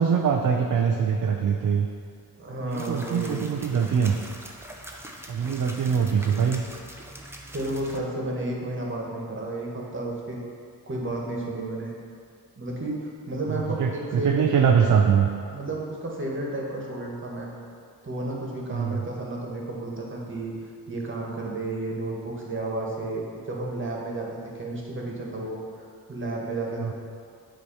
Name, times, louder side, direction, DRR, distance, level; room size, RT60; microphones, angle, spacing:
voice 1, 0.0-1.9 2.6-4.2 5.3-6.6 13.5-15.3 18.7-19.0 26.8-26.9, right 7 dB, 50° right, 3 dB, 0.5 m, -23 dB
voice 2, 2.4-3.4 7.5-10.4 10.9-11.9 12.6-14.5 15.5-17.5 18.0-20.5 20.9-24.3 24.5-26.9, right 2 dB, 30° right, -2 dB, 1.5 m, -32 dB
sound 1, 2.7-8.0, right 1 dB, 5° right, 0.7 m, -43 dB
8.6 x 3.1 x 5.5 m, 2.3 s
cardioid pair, 75°, 39 cm